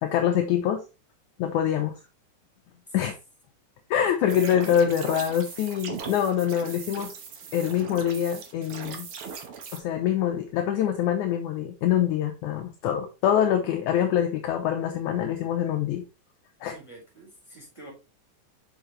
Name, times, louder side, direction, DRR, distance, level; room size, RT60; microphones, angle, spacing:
voice 1, 0.0-0.8 1.4-2.0 2.9-3.2 3.9-7.2 7.5-9.1 9.7-16.1 16.6-16.8, left 9 dB, 75° left, 5 dB, 2.0 m, -25 dB
voice 2, 4.2-4.9 16.7-17.9, right 1 dB, 10° left, -2 dB, 4.1 m, -44 dB
sound 1, 4.3-9.8, right 6 dB, 60° right, 1.5 m, -39 dB
6.4 x 6.0 x 3.1 m, 0.29 s
omnidirectional pair, 3.9 m